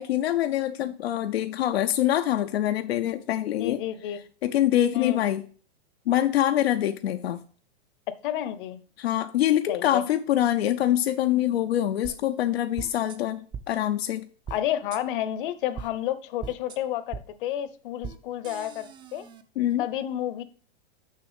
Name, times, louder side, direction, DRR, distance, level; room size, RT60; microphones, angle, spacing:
voice 1, 0.0-3.8 4.4-5.4 6.1-7.4 9.0-14.3 19.6-19.9, left 12 dB, 80° left, 0.6 m, -25 dB
voice 2, 3.6-4.2 4.9-5.2 8.2-8.8 9.7-10.0 14.5-19.3 19.8-20.4, left 12 dB, 60° left, 0.9 m, -30 dB
sound 1, 12.0-12.1 12.8-13.2 13.5-13.6 14.5-14.6 14.9-15.0 15.8-15.9 16.4-16.8 17.1-17.2 18.0-18.2 18.4-19.4, right 6 dB, 15° right, 0.4 m, -38 dB
6.7 x 5.7 x 5.1 m
hypercardioid pair, 130°, 30 cm